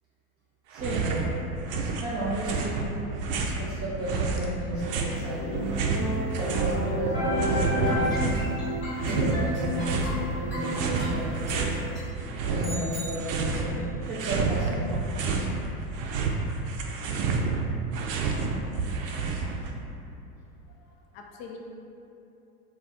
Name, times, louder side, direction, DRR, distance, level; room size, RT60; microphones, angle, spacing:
voice 1, 0.7-1.2 2.0-2.8 3.6-5.5 6.4-8.2 9.1-10.1 10.3-11.7 12.4-15.0, equal, 35° right, -9 dB, 0.7 m, -33 dB
sound 1, 0.7-1.3 1.5-3.6 4.1-6.8 7.0-8.5 8.9-10.1 10.6-11.8 12.2-13.7 14.0-15.5 15.8-19.7, right 4 dB, 65° right, 0.5 m, -29 dB
sound 2, 5.2-12.0, left 1 dB, 25° left, 0.9 m, -31 dB
sound 3, 12.6-13.9, right 2 dB, ahead, 0.9 m, -40 dB
voice 2, 20.7-21.6, left 6 dB, 45° left, 1 dB, 0.5 m, -45 dB
2.4 x 2.3 x 3.7 m, 2.8 s
hypercardioid pair, 85°, 43 cm